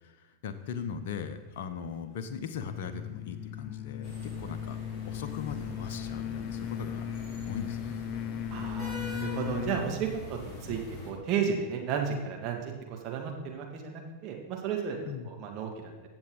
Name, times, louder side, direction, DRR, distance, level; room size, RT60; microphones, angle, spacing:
voice 1, 0.0-4.8 5.1-7.0 7.4-8.0 15.0-15.3, left 7 dB, 50° left, 9 dB, 0.9 m, -39 dB
sound 1, 2.6-10.0, left 9 dB, 35° left, 0.4 m, -37 dB
sound 2, 4.0-11.1, left 2 dB, 20° left, 3.2 m, -43 dB
voice 2, 8.5-15.9, right 7 dB, 35° right, 1 dB, 1.9 m, -33 dB
16.0 x 7.1 x 3.9 m, 1.2 s
figure-of-eight pair, 90°, 0 cm